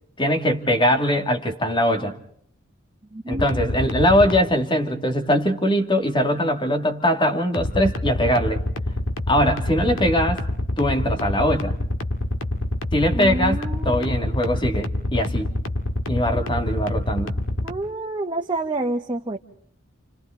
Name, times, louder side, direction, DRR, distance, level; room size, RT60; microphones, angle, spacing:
voice 1, 0.2-2.2 3.3-8.6 9.3-10.4 10.8-11.8 12.9-13.6 13.8-15.5 16.1-17.3, equal, 25° left, 5 dB, 2.4 m, -21 dB
voice 2, 3.1-3.6 13.1-14.4 16.3-16.5 17.6-19.4, right 2 dB, 25° right, 1 dB, 1.2 m, -29 dB
sound 1, 3.3-4.4 7.5-17.7, left 1 dB, 85° left, 2.1 m, -26 dB
29.5 x 29.5 x 3.9 m, 0.64 s
head